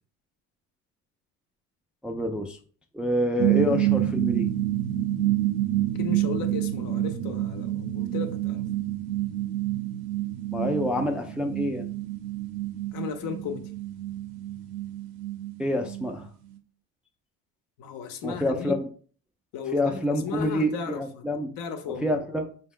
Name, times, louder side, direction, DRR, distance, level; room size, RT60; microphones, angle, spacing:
voice 1, 2.0-2.6 2.9-4.5 10.5-11.9 15.6-16.3 18.2-18.8 19.7-21.5 22.0-22.5, left 1 dB, 5° right, 0.4 m, -27 dB
sound 1, 3.4-16.3, right 14 dB, 75° right, 0.7 m, -28 dB
voice 2, 6.0-8.7 12.9-13.7 17.8-18.8 19.5-21.2 21.6-22.2, left 6 dB, 60° left, 0.8 m, -35 dB
4.1 x 2.2 x 3.7 m
supercardioid pair, 80°, 39 cm